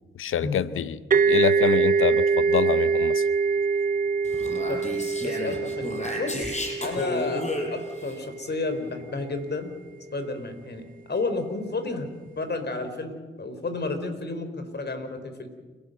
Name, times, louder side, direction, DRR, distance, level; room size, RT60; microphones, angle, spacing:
voice 1, 0.2-1.0 1.3-3.2, left 9 dB, 80° left, 15 dB, 0.7 m, -26 dB
sound 1, 1.1-8.6, right 5 dB, 45° right, 0.5 m, -24 dB
Speech, 4.2-8.1, left 1 dB, 35° left, 6.1 m, -32 dB
voice 2, 5.2-9.7 10.1-12.1 12.4-15.5, left 3 dB, 55° left, 8 dB, 4.1 m, -31 dB
29.5 x 12.5 x 7.9 m, 1.4 s
cardioid pair, 50°, 21 cm